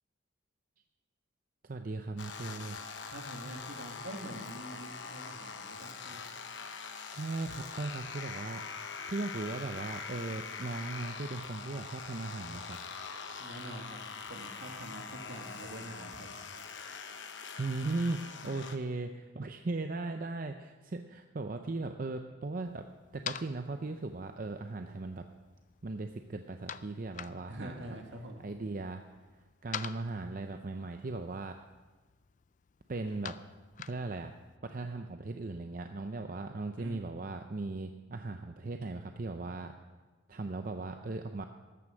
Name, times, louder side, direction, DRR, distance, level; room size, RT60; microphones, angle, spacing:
voice 1, 1.6-2.8 7.0-8.6 9.1-12.8 17.6-22.9 23.1-25.3 25.8-28.0 28.4-29.0 29.6-31.6 32.9-33.4 33.9-34.3 34.6-39.7 40.3-41.5, right 3 dB, 45° right, 6 dB, 0.5 m, -38 dB
sound 1, 2.2-18.8, left 5 dB, 70° left, 1.0 m, -43 dB
voice 2, 3.0-6.2 13.4-16.3 27.5-28.4 36.8-37.1, right 1 dB, 70° right, 3 dB, 1.8 m, -45 dB
sound 2, 22.6-34.6, left 9 dB, 40° left, 0.4 m, -48 dB
14.0 x 9.4 x 6.3 m, 1.3 s
head